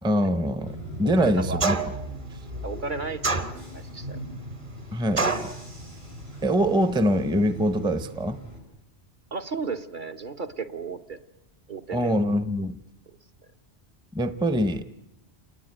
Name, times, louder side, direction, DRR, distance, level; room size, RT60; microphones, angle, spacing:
voice 1, 0.0-1.8 2.3-2.4 4.9-5.5 6.4-8.4 11.9-12.8 14.1-14.9, equal, 5° right, 11 dB, 0.8 m, -24 dB
Bus / Engine, 0.6-8.6, equal, 70° right, 7.4 m, -39 dB
voice 2, 1.2-1.7 2.6-3.4 3.7-4.2 9.3-11.2 11.7-12.2, right 4 dB, 45° right, 6 dB, 1.3 m, -34 dB
sound 1, 1.6-2.1 3.2-3.9 5.2-5.6, right 3 dB, 30° right, 1.2 m, -26 dB
29.0 x 19.5 x 9.2 m, 0.86 s
omnidirectional pair, 1.1 m